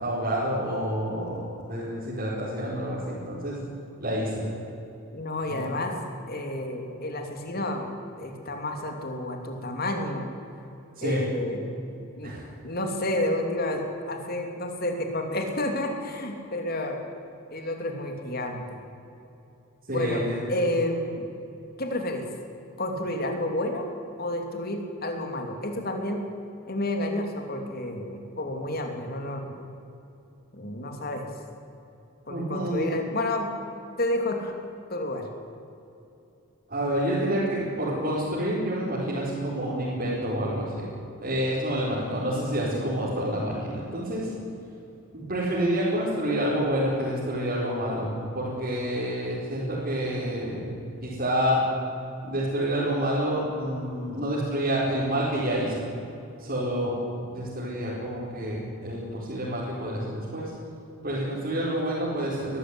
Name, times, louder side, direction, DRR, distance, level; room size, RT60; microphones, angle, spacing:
voice 1, 0.0-3.6 4.0-4.5 5.5-5.6 11.0-11.2 12.2-12.4 19.9-20.4 32.3-32.9 36.7-40.8 41.2-44.3 45.1-48.1 48.3-50.7 51.0-51.6 52.2-55.8 56.4-56.9 57.3-60.5 61.0-62.6, equal, 45° right, -8 dB, 4.7 m, -28 dB
voice 2, 5.1-5.9 6.3-7.8 8.2-10.2 11.0-11.6 12.2-12.3 12.6-17.0 17.5-18.6 19.9-20.2 20.5-21.2 21.8-22.2 22.8-23.9 24.2-26.2 26.7-29.6 30.5-31.2 32.3-33.5 34.0-34.5 34.9-35.2, left 1 dB, 45° left, 4 dB, 3.1 m, -30 dB
21.0 x 14.5 x 9.9 m, 2.8 s
head